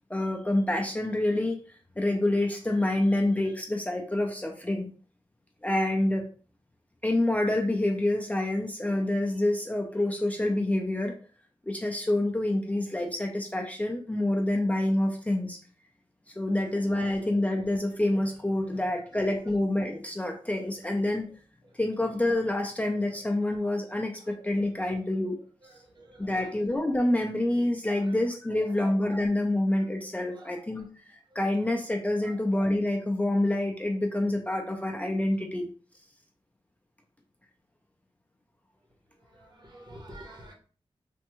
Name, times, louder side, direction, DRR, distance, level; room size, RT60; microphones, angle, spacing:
voice 1, 0.1-1.6 2.0-4.9 5.6-6.2 7.0-11.1 11.6-15.6 16.4-21.3 21.8-25.4 26.2-35.7, left 1 dB, 15° left, 2 dB, 0.4 m, -27 dB
voice 2, 25.8-26.6 27.9-28.2 28.5-28.7 30.2-30.5 32.2-32.3 39.3-40.5, right 1 dB, 45° right, -1 dB, 0.9 m, -48 dB
3.4 x 2.1 x 2.9 m, 0.40 s
wide cardioid pair, 125°, 10 cm